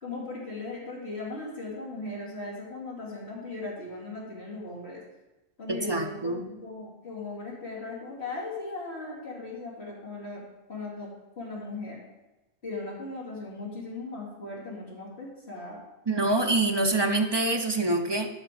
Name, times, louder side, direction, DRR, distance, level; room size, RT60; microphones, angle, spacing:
voice 1, 0.0-5.0 5.6-10.4 10.7-11.1 11.4-12.0 12.6-15.8, left 2 dB, 50° left, -5 dB, 2.9 m, -38 dB
voice 2, 5.7-6.4 16.1-18.3, right 2 dB, 25° right, 3 dB, 0.6 m, -25 dB
12.5 x 5.0 x 5.0 m, 1.0 s
omnidirectional pair, 1.4 m